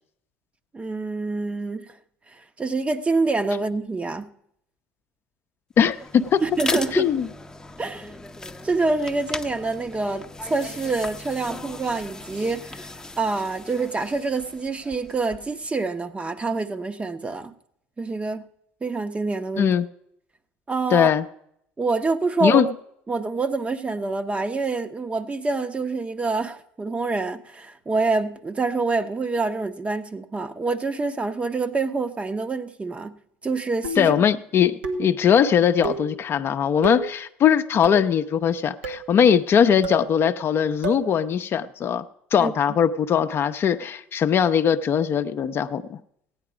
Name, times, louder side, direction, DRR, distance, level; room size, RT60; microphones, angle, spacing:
voice 1, 0.7-2.0 2.3-4.3 6.4-7.2 7.8-8.1 8.6-17.5 18.0-18.4 18.8-19.7 20.7-21.1 21.8-22.6 23.1-33.2 33.4-34.2 42.4-42.5, right 3 dB, 20° right, 0.8 m, -26 dB
voice 2, 5.8-6.4 6.9-7.3 19.6-19.9 20.9-21.2 22.4-22.7 34.0-42.0 42.3-46.0, left 8 dB, 45° left, 0.6 m, -20 dB
sound 1, 5.8-15.7, left 2 dB, 10° left, 0.8 m, -37 dB
sound 2, 33.8-34.2 34.8-35.2 35.8-36.1 36.8-37.1 37.8-38.2 38.8-39.1 39.8-40.1 40.8-41.1, right 3 dB, 90° right, 1.3 m, -30 dB
15.5 x 9.7 x 5.0 m
hypercardioid pair, 75°, 6 cm